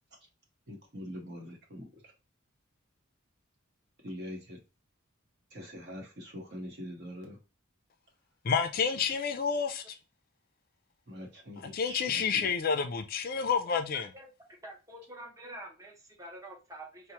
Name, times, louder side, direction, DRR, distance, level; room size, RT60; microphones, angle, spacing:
voice 1, 0.7-2.1 4.0-4.6 5.5-7.4 11.1-12.5, equal, 50° right, 1.0 m, -43 dB
voice 2, 8.4-10.0 11.7-14.1, left 6 dB, 45° left, 0.3 m, -29 dB
voice 3, 13.9-14.3 14.6-17.1, right 1 dB, 15° right, 0.6 m, -47 dB
4.4 x 2.0 x 2.8 m
head